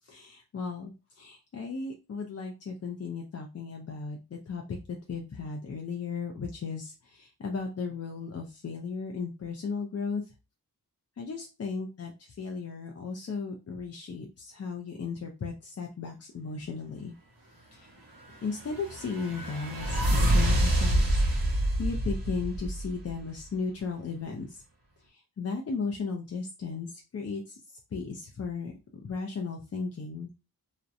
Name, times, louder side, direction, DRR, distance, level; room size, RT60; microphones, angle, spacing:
voice 1, 0.1-10.2 11.2-17.1 17.7-17.9 18.4-21.2 21.5-24.6 25.1-27.6 27.9-28.7 29.0-30.3, left 4 dB, 40° left, 1 dB, 0.4 m, -36 dB
sound 1, 18.3-23.2, right 1 dB, 60° right, 0.9 m, -27 dB
2.7 x 2.0 x 2.4 m, 0.29 s
wide cardioid pair, 70°, 39 cm